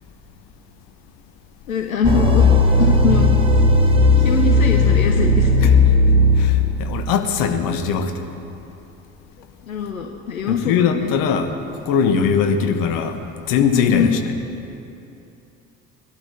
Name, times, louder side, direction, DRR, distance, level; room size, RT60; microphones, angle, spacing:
voice 1, 1.7-2.5 2.8-3.3 4.2-5.7 9.7-11.1 13.7-14.1, left 8 dB, 80° left, 4 dB, 0.9 m, -23 dB
sound 1, 2.0-7.0, left 2 dB, 15° right, 1.9 m, -15 dB
voice 2, 6.4-8.1 10.5-11.5 11.8-13.2 13.5-14.1, left 6 dB, 50° left, 6 dB, 1.4 m, -20 dB
21.0 x 12.5 x 4.6 m, 2.8 s
figure-of-eight pair, 60°, 41 cm